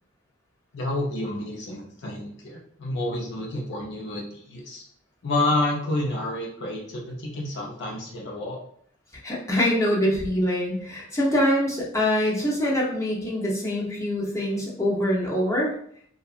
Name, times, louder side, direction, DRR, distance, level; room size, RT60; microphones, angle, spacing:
voice 1, 0.7-4.8 5.2-8.6, left 2 dB, 60° left, -2 dB, 0.6 m, -29 dB
voice 2, 9.2-15.7, equal, 15° left, -4 dB, 0.6 m, -24 dB
2.7 x 2.3 x 2.3 m, 0.64 s
head